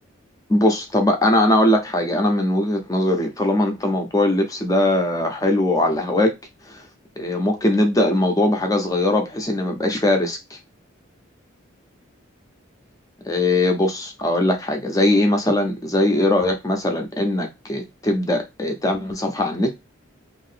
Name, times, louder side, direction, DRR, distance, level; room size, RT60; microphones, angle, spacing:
voice 1, 0.5-6.3 6.7-6.8 7.2-10.4 13.2-19.7, left 1 dB, 15° left, 0.5 m, -20 dB
2.7 x 2.6 x 3.2 m
head